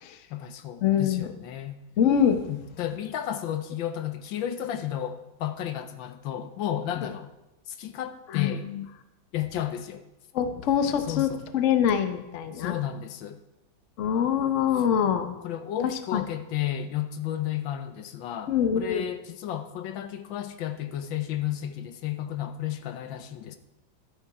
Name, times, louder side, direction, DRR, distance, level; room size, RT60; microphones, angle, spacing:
voice 1, 0.3-1.8 2.5-7.3 7.7-8.7 9.3-10.0 11.1-11.4 12.5-13.4 15.4-23.6, left 11 dB, 75° left, 9 dB, 1.4 m, -32 dB
voice 2, 0.8-1.3 2.0-2.5 8.3-8.8 10.3-12.7 14.0-15.4 16.1-16.2 18.5-19.1, left 8 dB, 55° left, 8 dB, 0.9 m, -24 dB
12.5 x 8.6 x 4.8 m, 0.97 s
omnidirectional pair, 2.1 m